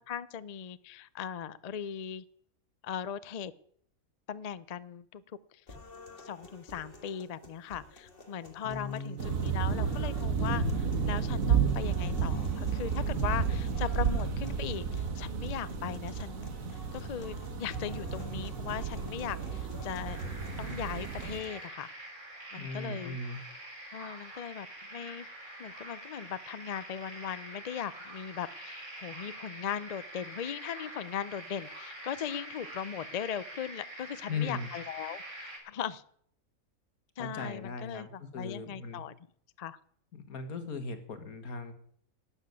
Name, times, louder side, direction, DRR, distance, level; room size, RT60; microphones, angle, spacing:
voice 1, 0.1-2.2 2.8-3.5 4.3-5.2 5.5-5.6 6.2-16.5 16.9-20.2 20.6-21.9 22.5-23.2 23.9-25.3 25.6-36.0 37.2-39.1 39.6-39.8, left 8 dB, 60° left, 17 dB, 0.4 m, -39 dB
sound 1, 5.7-21.7, left 2 dB, 40° left, 2.1 m, -51 dB
voice 2, 8.6-9.6 22.6-23.4 34.3-34.7 37.2-39.0 40.1-41.7, left 4 dB, 85° left, 8 dB, 2.1 m, -38 dB
sound 2, 9.2-21.4, right 6 dB, 70° right, 1.5 m, -32 dB
sound 3, 20.1-35.6, right 1 dB, 55° right, 4.3 m, -46 dB
12.5 x 7.2 x 9.5 m, 0.65 s
omnidirectional pair, 1.5 m